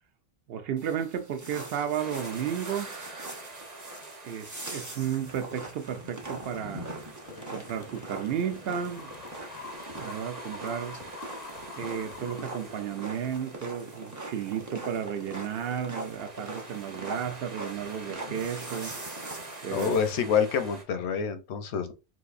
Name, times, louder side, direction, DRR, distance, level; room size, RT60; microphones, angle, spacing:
voice 1, 0.5-2.9 4.2-6.9 7.5-9.1 10.0-11.0 11.8-18.9 19.6-20.0, right 8 dB, 70° right, 0.8 m, -33 dB
sound 1, 0.8-20.1, right 2 dB, 20° right, 0.6 m, -42 dB
sound 2, 2.0-20.8, right 2 dB, 40° right, 1.0 m, -47 dB
sound 3, 7.2-13.2, left 6 dB, 55° left, 0.4 m, -46 dB
voice 2, 19.7-21.9, left 7 dB, 90° left, 0.9 m, -27 dB
3.9 x 2.6 x 2.4 m
omnidirectional pair, 1.1 m